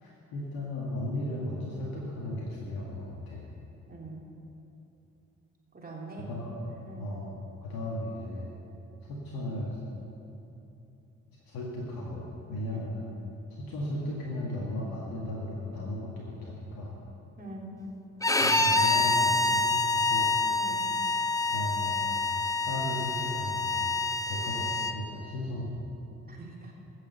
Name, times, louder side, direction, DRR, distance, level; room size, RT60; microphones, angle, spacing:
voice 1, 0.0-3.4 6.2-7.3 7.6-8.5 9.1-9.8 11.5-13.1 13.6-16.9 18.4-20.3 21.5-22.2 22.7-24.0 24.3-25.8, left 1 dB, 60° left, -4 dB, 1.9 m, -36 dB
voice 2, 3.9-4.2 5.7-6.3 6.8-7.1 12.7-12.8 17.4-17.7 20.6-20.8 26.3-26.7, right 2 dB, 20° right, -3 dB, 3.3 m, -43 dB
Bowed string instrument, 18.2-25.0, left 3 dB, 10° left, 0.7 m, -27 dB
15.0 x 6.5 x 6.8 m, 2.9 s
figure-of-eight pair, 45°, 40 cm